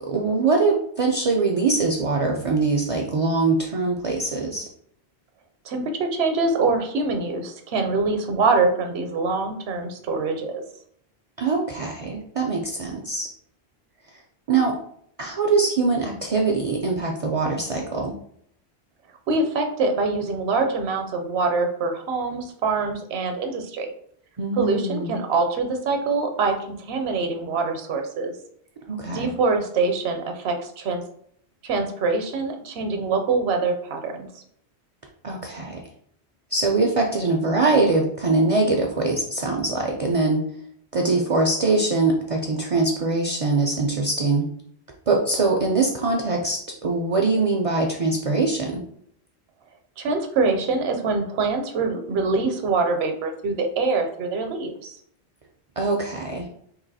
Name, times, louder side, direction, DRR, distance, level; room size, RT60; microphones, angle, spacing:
voice 1, 0.1-4.7 11.4-13.3 14.5-14.8 15.2-18.1 24.4-25.2 28.9-29.3 35.2-35.8 36.5-40.4 40.9-44.5 45.1-48.8 55.8-56.5, right 3 dB, 50° right, 1 dB, 0.4 m, -23 dB
voice 2, 5.6-10.6 19.3-23.9 24.6-28.3 29.1-31.0 31.6-34.3 50.0-55.0, right 3 dB, 75° right, 5 dB, 0.9 m, -24 dB
3.0 x 2.8 x 4.0 m, 0.67 s
omnidirectional pair, 1.1 m